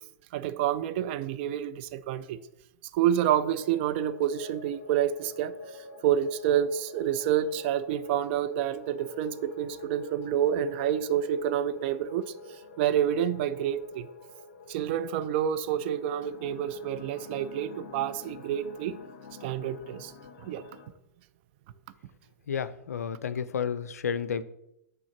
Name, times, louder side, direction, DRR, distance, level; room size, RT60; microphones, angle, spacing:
voice 1, 0.3-2.4 2.9-5.6 6.0-12.3 12.8-14.1 14.7-19.0 19.4-20.1 20.4-20.6, right 10 dB, 40° right, 0.4 m, -28 dB
sound 1, 3.6-20.9, left 3 dB, 45° left, 0.9 m, -47 dB
voice 2, 22.5-24.4, left 7 dB, 65° left, 0.4 m, -31 dB
6.2 x 3.6 x 5.8 m
figure-of-eight pair, 105°, 9 cm